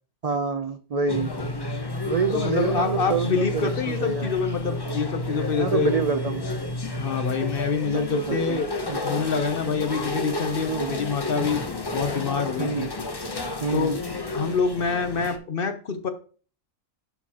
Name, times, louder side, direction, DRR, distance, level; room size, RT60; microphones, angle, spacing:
voice 1, 0.2-1.3 2.0-4.3 5.6-6.4 7.9-8.6 8.9-9.0 10.6-10.9 12.6-12.9 13.6-14.0, right 5 dB, 60° right, 8 dB, 0.4 m, -27 dB
sound 1, 1.1-15.4, left 2 dB, 25° left, 0.6 m, -31 dB
voice 2, 2.3-5.9 7.0-8.7 9.0-11.6 11.9-12.9 13.7-13.9 14.3-16.1, left 5 dB, 50° left, 9 dB, 0.9 m, -26 dB
11.0 x 4.4 x 2.9 m, 0.39 s
omnidirectional pair, 1.4 m